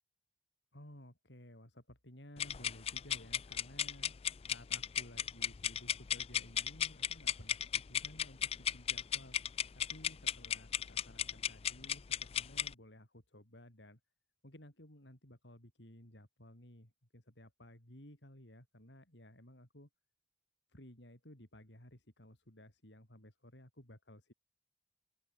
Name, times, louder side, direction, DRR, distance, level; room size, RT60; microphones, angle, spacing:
voice 1, 0.7-4.2 4.4-9.4 9.7-14.0 14.4-19.9 20.7-24.3, left 1 dB, 70° left, 5.5 m, -56 dB
sound 1, 2.4-12.7, left 9 dB, 30° left, 0.4 m, -36 dB
open air
head